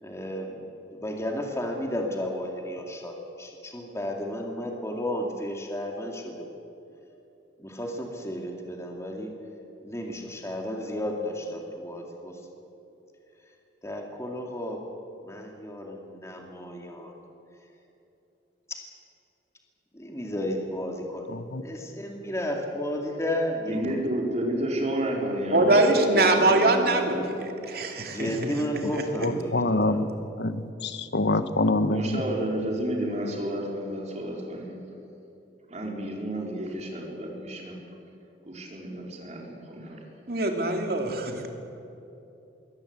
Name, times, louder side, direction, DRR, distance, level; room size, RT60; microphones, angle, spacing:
voice 1, 0.0-0.6 0.9-6.5 7.6-9.3 9.8-12.3 13.8-14.8 15.2-17.1 18.7-18.8 19.9-21.4 21.6-23.9 28.1-30.0, equal, 15° left, 1 dB, 2.4 m, -33 dB
voice 2, 21.3-21.6 29.2-30.1 30.4-32.2, left 2 dB, 70° left, 11 dB, 1.2 m, -26 dB
voice 3, 23.7-27.3 31.9-34.8 35.7-37.8 38.5-40.0, equal, 40° right, -1 dB, 4.4 m, -31 dB
voice 4, 25.5-28.5 28.9-29.0 40.3-41.5, right 2 dB, 55° right, 3 dB, 2.7 m, -23 dB
22.0 x 18.0 x 8.2 m, 2.9 s
head